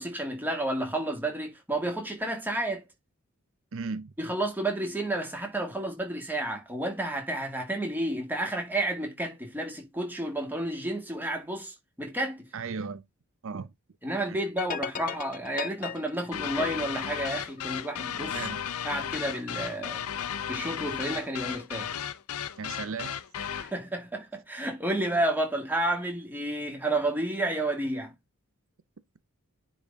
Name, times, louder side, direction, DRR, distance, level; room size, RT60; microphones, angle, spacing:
voice 1, 0.0-2.8 4.2-12.5 14.0-18.4 18.8-20.0 20.5-22.0 23.5-28.1, right 1 dB, 10° right, 2.1 m, -31 dB
voice 2, 3.7-4.1 12.5-13.0 13.4-13.7 14.3-14.4 18.3-18.6 22.6-23.2, right 5 dB, 60° right, 0.6 m, -35 dB
sound 1, 14.6-18.0, left 7 dB, 40° left, 0.4 m, -38 dB
sound 2, 16.3-23.8, left 8 dB, 80° left, 0.6 m, -34 dB
9.9 x 4.1 x 3.6 m
head